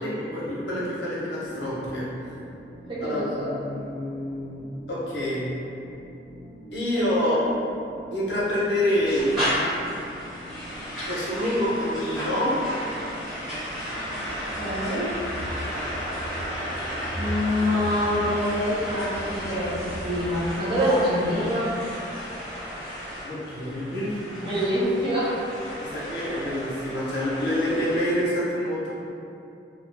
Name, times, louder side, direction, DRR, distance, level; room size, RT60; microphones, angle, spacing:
voice 1, 0.0-2.1 3.0-4.6 4.9-5.5 6.7-7.4 8.1-9.4 11.1-12.6 23.2-24.2 25.8-28.9, left 1 dB, 85° left, -7 dB, 0.8 m, -27 dB
sound 1, 1.4-20.9, right 1 dB, 90° right, 1.1 m, -46 dB
voice 2, 2.9-3.5 6.9-7.4 14.1-14.2 14.5-15.1 17.1-21.8 24.4-25.4, equal, 30° right, -11 dB, 0.8 m, -26 dB
sound 2, 9.0-28.2, equal, ahead, 1.2 m, -33 dB
sound 3, 13.9-20.6, left 1 dB, 40° left, 0.7 m, -38 dB
2.7 x 2.4 x 3.4 m, 2.7 s
head